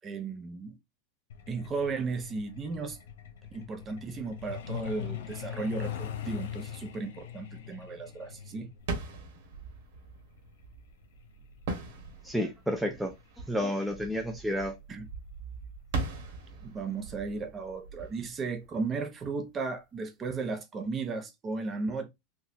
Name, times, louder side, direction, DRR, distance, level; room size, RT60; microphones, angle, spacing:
voice 1, 0.0-0.7 1.5-3.0 3.5-8.7 14.9-15.0 16.6-22.1, right 4 dB, 25° right, 0.9 m, -35 dB
Truck, 1.3-13.6 14.8-15.0 15.4-15.6 15.9-16.2 16.5-16.6 17.1-17.2, left 9 dB, 85° left, 0.9 m, -42 dB
sound 1, 8.8-19.4, right 3 dB, 70° right, 1.6 m, -40 dB
voice 2, 12.2-13.1 13.5-14.8, equal, ahead, 0.6 m, -30 dB
4.1 x 2.6 x 2.7 m
supercardioid pair, 135°, 0 cm